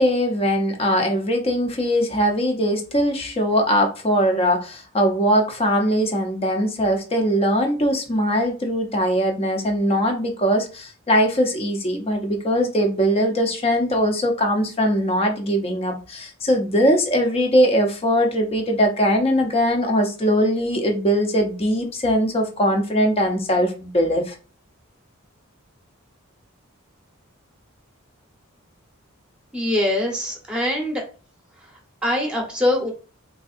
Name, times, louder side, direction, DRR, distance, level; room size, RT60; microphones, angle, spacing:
voice 1, 0.0-24.4, equal, 25° left, 0.6 m, -21 dB
voice 2, 29.5-31.0 31.6-32.9, left 1 dB, 5° right, 0.9 m, -23 dB
3.9 x 2.6 x 2.4 m
head